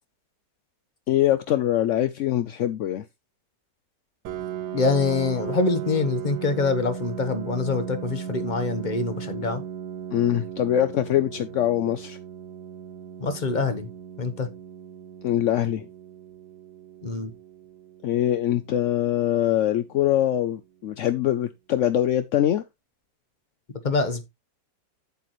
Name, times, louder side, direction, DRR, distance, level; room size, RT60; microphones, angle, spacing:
voice 1, 1.1-3.0 10.1-12.2 15.2-15.9 18.0-22.6, left 12 dB, 70° left, 0.7 m, -23 dB
Piano, 4.2-19.7, right 9 dB, 70° right, 1.4 m, -37 dB
voice 2, 4.7-9.6 13.2-13.9 14.2-14.5 17.0-17.3 23.8-24.2, left 3 dB, 35° left, 0.9 m, -25 dB
8.4 x 8.1 x 3.1 m
omnidirectional pair, 1.9 m